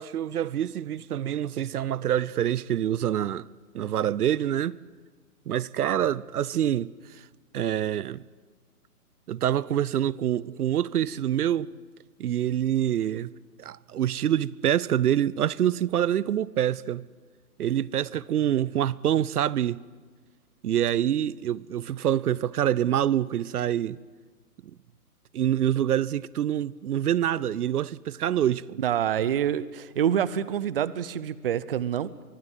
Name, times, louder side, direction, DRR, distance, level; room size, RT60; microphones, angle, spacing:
voice 1, 0.0-3.5 3.7-4.8 5.5-7.2 7.5-8.2 9.3-11.7 12.2-13.3 13.6-17.1 17.6-19.8 20.6-24.0 25.3-28.8, right 11 dB, 75° right, 0.7 m, -26 dB
voice 2, 28.8-32.2, right 9 dB, 40° right, 0.6 m, -27 dB
24.0 x 23.0 x 8.0 m
hypercardioid pair, 160°, 46 cm